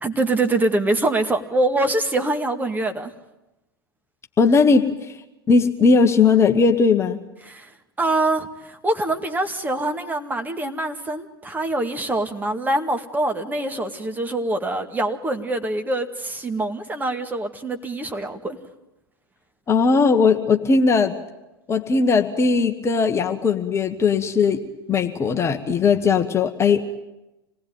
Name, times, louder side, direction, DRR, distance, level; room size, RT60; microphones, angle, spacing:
voice 1, 0.0-3.1 7.4-18.6, right 2 dB, 15° right, 6 dB, 2.1 m, -24 dB
voice 2, 4.4-5.1 5.5-7.2 19.7-21.1 21.7-24.6 24.9-26.8, left 4 dB, 20° left, 5 dB, 1.4 m, -18 dB
26.5 x 19.0 x 9.3 m, 0.97 s
figure-of-eight pair, 90°, 12 cm